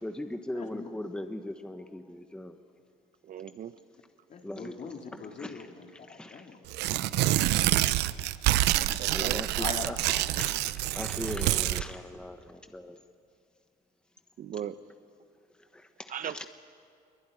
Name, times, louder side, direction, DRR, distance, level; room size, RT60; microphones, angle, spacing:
voice 1, 0.0-2.6 4.4-4.8 5.4-5.7 6.1-6.5 7.2-7.3 9.1-13.0 15.7-16.4, left 1 dB, 5° left, 1.2 m, -39 dB
voice 2, 3.2-3.8 9.0-9.5 14.4-14.8 16.1-16.5, right 10 dB, 50° right, 0.8 m, -37 dB
voice 3, 4.3-6.6 9.6-9.9, left 5 dB, 45° left, 2.8 m, -41 dB
Tearing, 6.7-11.8, right 15 dB, 85° right, 0.7 m, -27 dB
23.0 x 22.0 x 10.0 m
cardioid pair, 110°, 17 cm